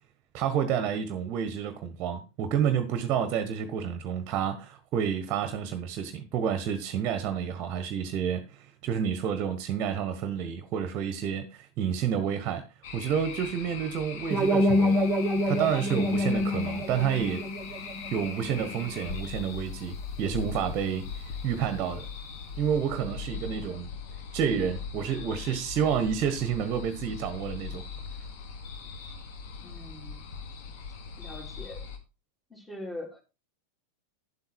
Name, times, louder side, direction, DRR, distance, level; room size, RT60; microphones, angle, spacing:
voice 1, 0.3-12.7 12.9-15.0 15.5-17.5 18.1-22.0 22.6-23.9 24.3-27.8, right 8 dB, 35° right, 1.5 m, -29 dB
sound 1, 12.8-32.0, left 6 dB, 50° left, 2.3 m, -40 dB
sound 2, 14.3-19.2, left 1 dB, 20° right, 1.8 m, -27 dB
voice 2, 29.6-30.3 31.2-31.9 32.5-33.2, left 1 dB, 10° left, 4.0 m, -42 dB
10.5 x 7.9 x 4.5 m
figure-of-eight pair, 90°, 0 cm